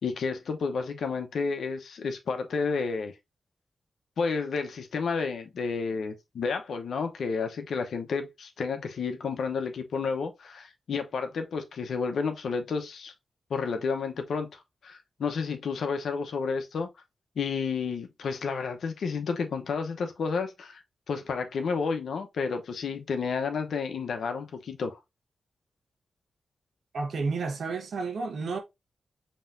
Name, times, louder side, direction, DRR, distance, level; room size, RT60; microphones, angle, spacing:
voice 1, 0.0-3.1 4.2-13.1 13.5-16.9 17.4-20.8 21.1-25.0, left 5 dB, 80° left, 0.8 m, -31 dB
voice 2, 26.9-28.6, right 4 dB, 75° right, 1.0 m, -31 dB
5.4 x 3.0 x 2.6 m
cardioid pair, 55°, 0 cm